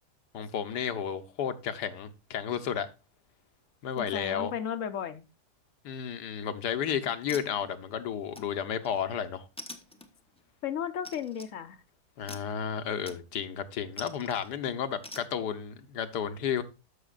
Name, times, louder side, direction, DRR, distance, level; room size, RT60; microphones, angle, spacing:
voice 1, 0.3-2.9 3.8-4.5 5.8-9.5 12.2-16.6, left 8 dB, 80° left, 1.5 m, -32 dB
voice 2, 4.0-5.3 10.6-11.8, left 8 dB, 60° left, 0.9 m, -34 dB
sound 1, 6.6-6.8 7.3-7.9 8.4-9.0 9.6-10.4 11.0-11.5 12.3-12.6 13.1-13.5 14.0-14.5 15.0-15.3, left 1 dB, 5° left, 0.5 m, -45 dB
13.5 x 6.0 x 2.4 m
omnidirectional pair, 1.8 m